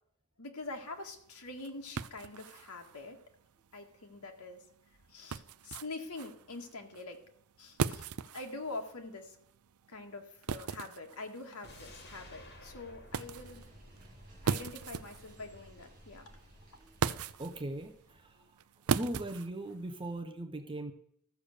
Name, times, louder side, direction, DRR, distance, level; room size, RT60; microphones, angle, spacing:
voice 1, 0.4-3.2 3.7-4.6 5.1-7.2 7.6-9.4 9.9-13.7 14.4-16.3, left 2 dB, 90° left, 4 dB, 1.9 m, -45 dB
sound 1, 0.6-20.2, right 6 dB, 75° right, 0.5 m, -40 dB
sound 2, 11.6-14.8 15.1-15.2, left 1 dB, 50° left, 2.5 m, -54 dB
sound 3, 13.1-18.4, equal, 40° right, 4.4 m, -56 dB
voice 2, 17.4-18.4 18.9-20.9, right 1 dB, 25° right, 6 dB, 0.7 m, -39 dB
13.5 x 7.0 x 6.6 m, 0.67 s
head